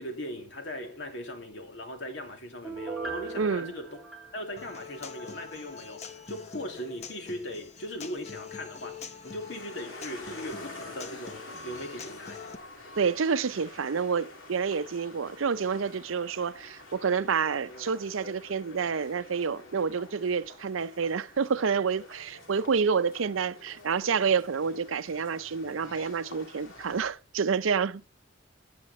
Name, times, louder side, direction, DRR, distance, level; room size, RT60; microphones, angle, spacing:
voice 1, 0.0-4.0 4.3-12.4, left 1 dB, 65° left, 2.6 m, -39 dB
Piano, 2.6-5.3 5.7-5.8, right 4 dB, ahead, 2.9 m, -39 dB
voice 2, 3.4-3.7 13.0-28.0, right 6 dB, 80° right, 0.6 m, -28 dB
Human voice / Acoustic guitar, 4.6-12.6, left 5 dB, 35° left, 0.9 m, -45 dB
sound 1, 9.1-27.1, left 2 dB, 80° left, 3.1 m, -47 dB
16.5 x 8.6 x 4.2 m
head